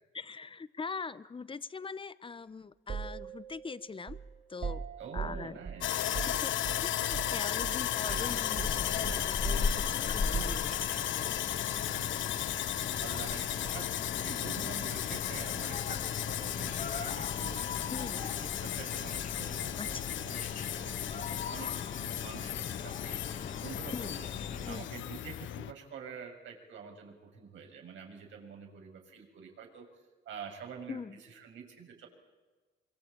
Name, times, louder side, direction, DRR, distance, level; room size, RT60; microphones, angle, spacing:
voice 1, 0.1-4.2 4.5-4.8 5.1-5.6 6.3-10.9 17.9-18.3 19.8-19.9 23.9-24.2 24.7-24.9 30.9-31.2, left 4 dB, 25° left, 16 dB, 1.1 m, -42 dB
sound 1, 2.9-7.3 7.6-7.8 8.1-11.1, right 6 dB, 45° right, 5.4 m, -41 dB
voice 2, 5.0-6.2 11.8-12.6 12.9-17.7 18.2-21.7 22.0-23.3 23.6-24.3 24.7-29.9 30.3-31.0 31.3-32.1, right 6 dB, 75° right, 2 dB, 6.9 m, -47 dB
Sawing, 5.8-25.7, left 12 dB, 75° left, 1.0 m, -35 dB
sound 2, 8.1-24.8, left 4 dB, 40° left, 2.2 m, -40 dB
25.0 x 25.0 x 8.8 m, 1.3 s
cardioid pair, 90°, 20 cm